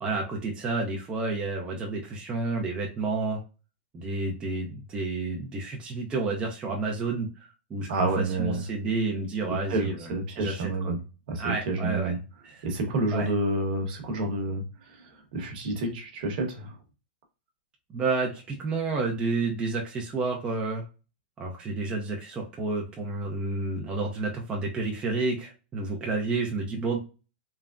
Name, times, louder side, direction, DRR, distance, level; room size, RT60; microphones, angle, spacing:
voice 1, 0.0-3.4 3.9-7.3 7.7-10.7 11.4-12.1 12.4-12.7 13.1-13.3 17.9-20.8 21.4-27.0, right 3 dB, 15° right, -1 dB, 0.5 m, -30 dB
voice 2, 7.9-8.6 9.5-11.0 11.3-12.2 12.6-16.7, right 2 dB, 55° right, 3 dB, 1.0 m, -29 dB
3.4 x 2.0 x 2.4 m, 0.32 s
supercardioid pair, 150°, 6 cm